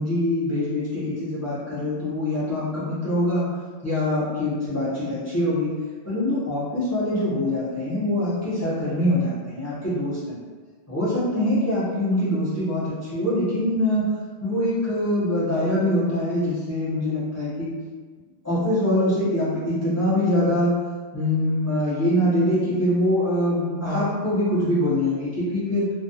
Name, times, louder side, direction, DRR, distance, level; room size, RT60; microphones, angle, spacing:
voice 1, 0.0-3.5 3.8-5.7 6.0-10.2 10.9-14.1 14.4-17.7 18.4-20.8 21.1-25.9, left 1 dB, 20° left, -10 dB, 0.4 m, -24 dB
2.3 x 2.2 x 2.7 m, 1.5 s
omnidirectional pair, 1.3 m